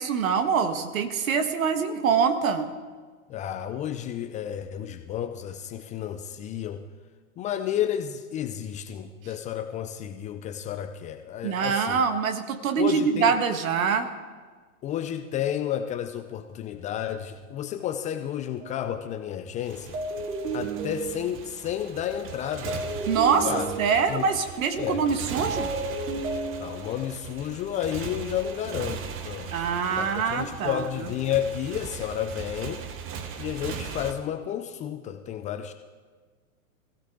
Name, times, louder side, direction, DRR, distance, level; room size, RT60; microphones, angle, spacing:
voice 1, 0.0-2.7 11.4-14.1 23.1-25.7 29.5-31.0, right 6 dB, 70° right, 8 dB, 1.7 m, -25 dB
voice 2, 3.3-6.9 7.4-12.0 12.8-13.4 14.8-20.0 20.5-22.8 23.4-23.7 24.1-24.2 24.8-25.1 26.6-29.7 30.0-32.8 33.4-35.7, left 10 dB, 15° left, 8 dB, 0.5 m, -31 dB
sound 1, 18.6-18.9 19.9-21.7 22.7-24.4 25.4-27.1, right 3 dB, 90° right, 3.8 m, -33 dB
Motorcycle, 19.6-34.1, right 6 dB, 30° right, 1.2 m, -39 dB
22.0 x 15.5 x 3.8 m, 1.5 s
hypercardioid pair, 115°, 43 cm